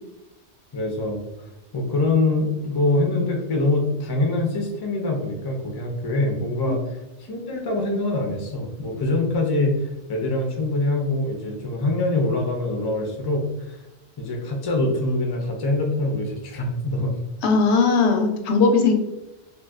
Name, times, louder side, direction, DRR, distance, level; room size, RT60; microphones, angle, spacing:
voice 1, 0.7-1.2 1.7-13.8 14.2-17.1, left 2 dB, 35° left, 1 dB, 0.4 m, -24 dB
voice 2, 17.4-18.9, left 4 dB, 75° left, 4 dB, 0.8 m, -18 dB
3.9 x 2.5 x 2.3 m, 0.95 s
omnidirectional pair, 1.2 m